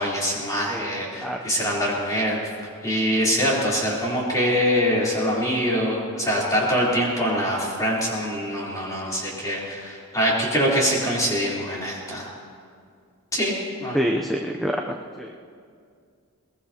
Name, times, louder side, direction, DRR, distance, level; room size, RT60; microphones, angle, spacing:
voice 1, 0.0-2.4 2.8-12.3 13.3-13.6 13.8-14.0, equal, 15° left, -6 dB, 3.6 m, -24 dB
voice 2, 13.9-15.3, equal, ahead, 1 dB, 0.6 m, -26 dB
21.5 x 20.0 x 2.9 m, 2.2 s
head